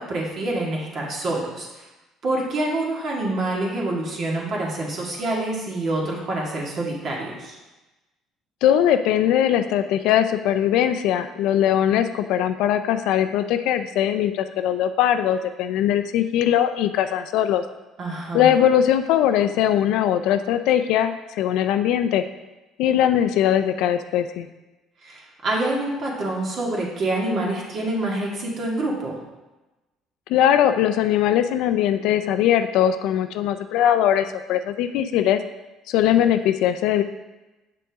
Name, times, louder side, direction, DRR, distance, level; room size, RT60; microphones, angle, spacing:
voice 1, 0.0-1.8 2.2-7.6 18.0-18.5 25.0-29.2, right 2 dB, 50° right, -2 dB, 2.0 m, -26 dB
voice 2, 8.6-17.6 18.3-21.1 21.4-22.2 22.8-24.5 30.3-35.4 35.9-37.0, left 10 dB, 75° left, 9 dB, 0.4 m, -20 dB
6.8 x 6.0 x 3.5 m, 1.1 s
cardioid pair, 95°, 0 cm